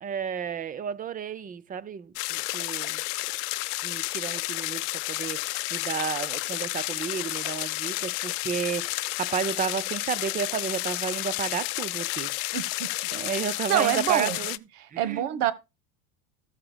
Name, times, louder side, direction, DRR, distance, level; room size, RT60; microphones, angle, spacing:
voice 1, 0.0-3.0 3.8-12.3 13.1-14.6 14.9-15.3, right 7 dB, 20° right, 0.5 m, -32 dB
sound 1, 2.2-14.6, left 24 dB, 65° left, 0.6 m, -31 dB
voice 2, 12.5-12.9 13.7-14.4 14.8-15.5, right 11 dB, 80° right, 1.3 m, -26 dB
14.5 x 7.6 x 2.2 m
supercardioid pair, 105°, 45 cm